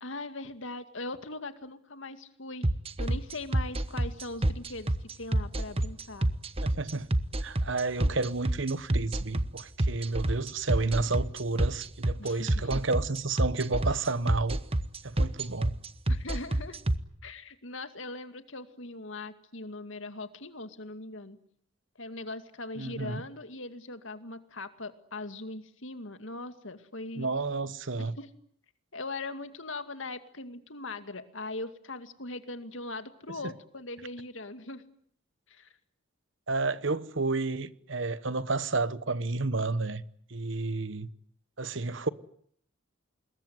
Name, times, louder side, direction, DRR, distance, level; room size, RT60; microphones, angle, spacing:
voice 1, 0.0-2.7 3.0-6.3 12.2-12.8 16.1-16.8 17.2-21.4 22.0-27.3 28.0-28.3 28.9-34.8 35.5-35.7, left 2 dB, 65° left, 2.3 m, -40 dB
sound 1, 2.6-17.0, right 1 dB, 30° right, 1.2 m, -27 dB
voice 2, 6.6-7.1 7.4-14.6 15.0-15.8 22.8-23.2 27.2-28.1 36.5-40.0 40.3-41.1 41.6-42.1, right 3 dB, 60° right, 1.2 m, -31 dB
26.5 x 21.5 x 9.6 m
head